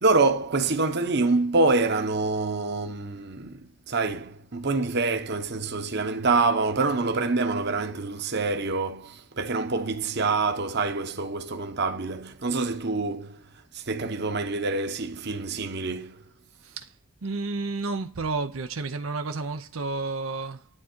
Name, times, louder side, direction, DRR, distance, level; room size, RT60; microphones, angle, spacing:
voice 1, 0.0-13.4 13.7-16.2, right 3 dB, 55° right, 1.0 m, -26 dB
voice 2, 16.6-16.9 17.2-20.7, right 3 dB, 90° right, 0.7 m, -31 dB
11.0 x 3.7 x 4.5 m
head